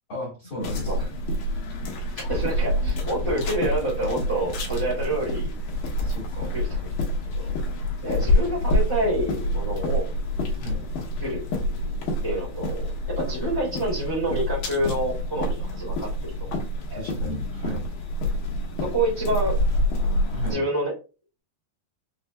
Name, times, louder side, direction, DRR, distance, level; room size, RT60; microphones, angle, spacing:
voice 1, 0.1-1.0 6.0-6.5 8.2-8.3 10.6-10.8 16.9-17.9 20.3-20.7, left 1 dB, 65° left, -6 dB, 1.3 m, -34 dB
sound 1, 0.6-20.5, left 1 dB, 80° left, 1.8 m, -27 dB
voice 2, 2.1-5.5 6.5-6.8 7.3-7.5 8.0-10.1 11.2-11.4 12.2-16.5 16.9-17.1 18.8-19.6 20.5-20.9, right 1 dB, 35° left, -6 dB, 0.4 m, -28 dB
6.5 x 2.7 x 2.2 m, 0.32 s
omnidirectional pair, 4.9 m